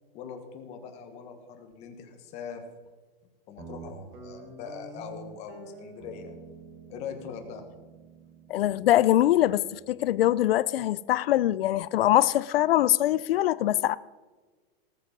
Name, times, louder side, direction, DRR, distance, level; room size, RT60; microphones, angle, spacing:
voice 1, 0.1-2.6 3.5-6.4 6.9-7.6, left 7 dB, 20° left, 1.3 m, -41 dB
Guitar, 3.6-10.3, right 4 dB, 60° right, 3.2 m, -48 dB
voice 2, 8.5-14.0, left 13 dB, 70° left, 0.5 m, -23 dB
19.0 x 7.5 x 5.4 m
supercardioid pair, 175°, 30 cm